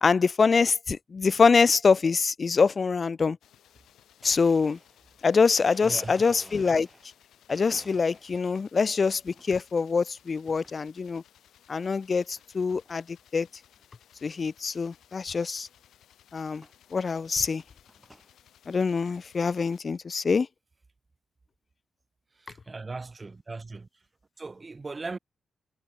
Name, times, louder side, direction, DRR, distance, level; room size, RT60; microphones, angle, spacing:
voice 1, 0.0-3.4 4.2-4.8 5.2-6.9 7.5-11.2 11.7-13.0 13.3-13.5 14.2-15.7 16.3-16.6 16.9-17.6 18.7-20.5, left 5 dB, 30° left, 0.4 m, -24 dB
sound 1, 3.4-19.8, left 10 dB, 85° left, 5.7 m, -60 dB
Domestic sounds home sounds, 3.9-4.0 4.2-7.2 7.5-8.5 9.0-9.5 10.5-10.8 11.4-11.5 12.4-12.5 12.7-13.0 13.5-13.6 13.8-13.9 14.3-14.4 15.7-15.8 16.6-16.8 17.4-18.3, right 1 dB, 5° right, 3.9 m, -53 dB
voice 2, 5.8-6.1 22.3-23.9 24.4-25.2, right 3 dB, 20° right, 3.1 m, -38 dB
wide cardioid pair, 150°, 0 cm